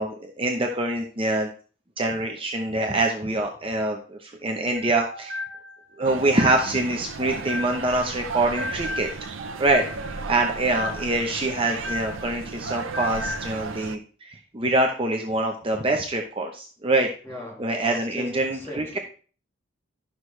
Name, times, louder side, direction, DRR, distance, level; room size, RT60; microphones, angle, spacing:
voice 1, 0.0-1.5 2.0-5.4 6.0-9.1 9.6-17.1 17.6-19.0, right 2 dB, 25° right, 0.7 m, -25 dB
sound 1, 4.8-8.0 8.3-12.4 12.7-13.5, left 1 dB, 45° right, 1.1 m, -35 dB
sound 2, 6.0-14.0, right 4 dB, 75° right, 0.7 m, -35 dB
voice 2, 17.2-19.0, left 1 dB, 10° left, 1.7 m, -38 dB
12.0 x 6.2 x 3.2 m
head